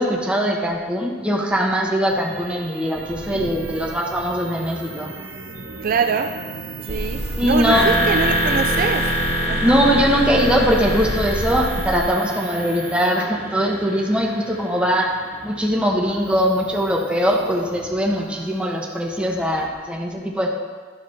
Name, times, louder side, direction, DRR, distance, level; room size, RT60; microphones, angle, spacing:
voice 1, 0.0-5.1 7.3-7.9 9.6-15.1 15.4-20.5, equal, 5° right, 1.1 m, -21 dB
sound 1, 2.1-19.7, right 4 dB, 70° right, 0.8 m, -38 dB
voice 2, 2.8-3.9 5.6-6.5 6.8-9.8, right 5 dB, 50° right, 0.3 m, -25 dB
sound 2, 6.9-12.0, equal, 35° left, 1.7 m, -28 dB
sound 3, 7.7-15.5, equal, 70° left, 1.9 m, -26 dB
12.0 x 4.8 x 5.5 m
head